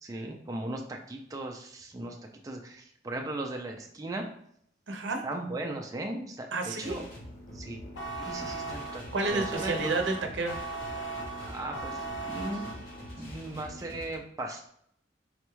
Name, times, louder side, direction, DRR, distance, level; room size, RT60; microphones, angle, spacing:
voice 1, 0.0-2.2 2.4-4.3 5.2-6.5 6.8-7.1 7.5-7.8 8.2-9.9 11.5-12.6 13.2-14.7, right 2 dB, 20° right, 1 dB, 0.3 m, -37 dB
voice 2, 4.9-5.2 6.5-7.0 9.1-10.6, right 3 dB, 80° right, 3 dB, 0.6 m, -30 dB
sound 1, 6.8-14.1, equal, 55° left, 1.0 m, -45 dB
sound 2, 7.9-13.2, right 3 dB, 80° left, 0.6 m, -38 dB
4.1 x 2.3 x 3.0 m, 0.68 s
head